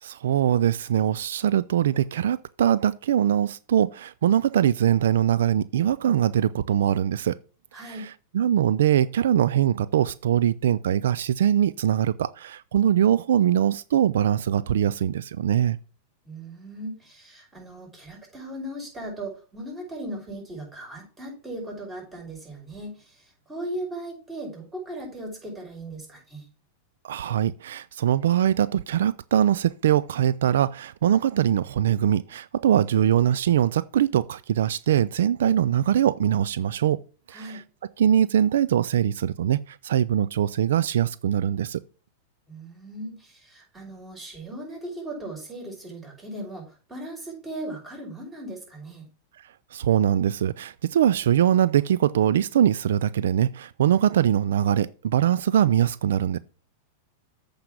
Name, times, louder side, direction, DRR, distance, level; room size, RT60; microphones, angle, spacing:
voice 1, 0.0-7.4 7.7-15.8 27.0-37.0 37.3-37.6 38.0-41.8 49.7-56.4, right 10 dB, 75° right, 0.3 m, -22 dB
voice 2, 7.7-8.1 16.2-26.5 37.3-37.6 42.5-49.1, right 1 dB, 15° right, 5.6 m, -38 dB
8.0 x 5.1 x 5.9 m
hypercardioid pair, 110°, 0 cm